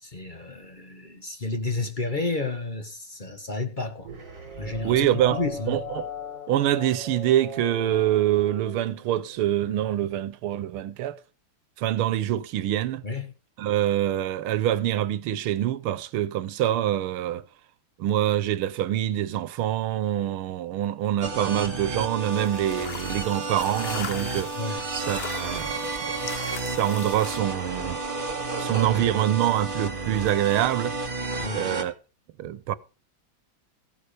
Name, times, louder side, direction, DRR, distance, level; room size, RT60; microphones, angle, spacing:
voice 1, 0.0-4.1 4.6-5.8 13.0-13.3 24.6-24.8 31.4-31.7, left 3 dB, 30° left, 1.2 m, -31 dB
sound 1, 4.0-9.6, equal, 45° right, 3.8 m, -38 dB
voice 2, 4.8-5.4 5.7-6.1 6.5-11.2 11.8-13.0 13.6-17.4 18.0-24.5 24.9-28.0 28.6-31.0 31.5-31.9 32.4-32.8, right 12 dB, 90° right, 1.7 m, -25 dB
sound 2, 21.2-31.8, right 3 dB, 25° right, 1.9 m, -31 dB
sound 3, 22.3-27.4, left 6 dB, 50° left, 0.7 m, -39 dB
15.5 x 8.6 x 5.1 m
omnidirectional pair, 2.3 m